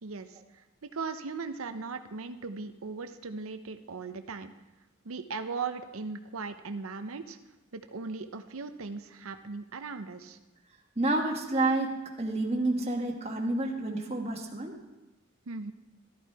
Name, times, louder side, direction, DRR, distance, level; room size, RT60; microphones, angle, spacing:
voice 1, 0.0-4.5 5.0-7.4 7.7-10.4 15.5-15.7, right 4 dB, 80° right, 9 dB, 0.7 m, -38 dB
voice 2, 11.0-14.7, right 2 dB, 30° right, 0 dB, 1.4 m, -29 dB
13.0 x 11.0 x 4.6 m, 1.0 s
head